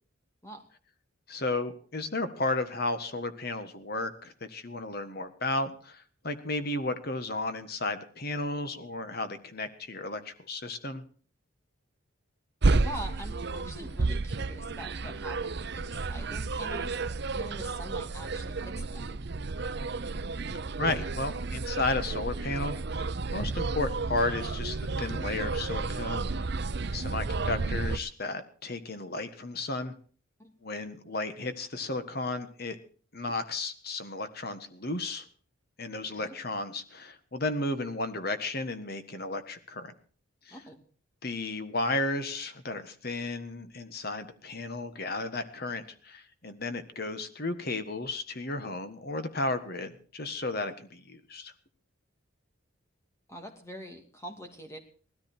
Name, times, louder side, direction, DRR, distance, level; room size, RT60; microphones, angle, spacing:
voice 1, 1.3-11.0 20.8-26.5 26.9-29.9 30.6-32.8 33.1-35.2 35.8-39.9 40.5-40.6 41.2-51.5, left 2 dB, 45° left, 10 dB, 1.5 m, -33 dB
sound 1, 12.6-28.0, right 3 dB, 55° right, 0.7 m, -31 dB
voice 2, 12.8-19.2 30.4-30.5 36.0-36.3 40.5-40.8 53.3-54.8, equal, 15° left, 4 dB, 2.7 m, -44 dB
18.5 x 13.5 x 4.5 m, 0.43 s
head